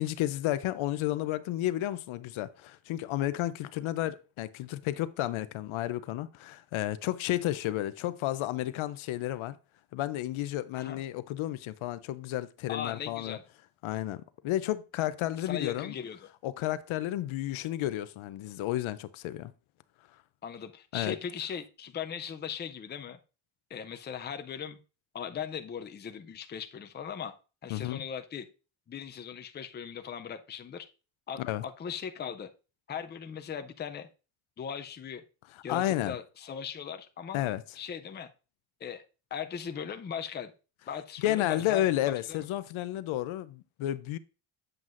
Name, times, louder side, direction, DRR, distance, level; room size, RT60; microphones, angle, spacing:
voice 1, 0.0-9.6 9.9-13.4 13.8-15.9 16.4-19.5 20.9-21.2 27.7-28.0 31.4-31.6 35.7-36.2 37.3-37.6 41.2-44.2, left 14 dB, 75° left, 0.6 m, -32 dB
voice 2, 12.7-13.4 15.4-16.3 20.4-23.2 23.7-24.8 25.1-27.3 27.6-28.5 28.9-30.9 31.3-32.5 32.9-34.1 34.6-35.2 35.6-37.4 37.8-38.3 38.8-39.0 39.3-40.5 40.9-42.4, left 7 dB, 25° left, 0.4 m, -39 dB
7.9 x 7.3 x 2.5 m
cardioid pair, 160°, 49 cm